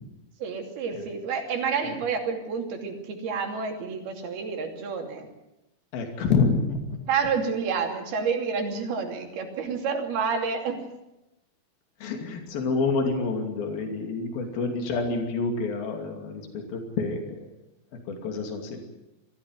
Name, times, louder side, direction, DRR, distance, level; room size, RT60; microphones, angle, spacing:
voice 1, 0.4-5.3 7.1-10.8, right 5 dB, 80° right, 3 dB, 4.8 m, -29 dB
voice 2, 5.9-6.8 12.0-17.4 18.1-18.8, left 4 dB, 70° left, 4 dB, 4.5 m, -28 dB
22.0 x 15.0 x 9.8 m, 0.93 s
omnidirectional pair, 4.4 m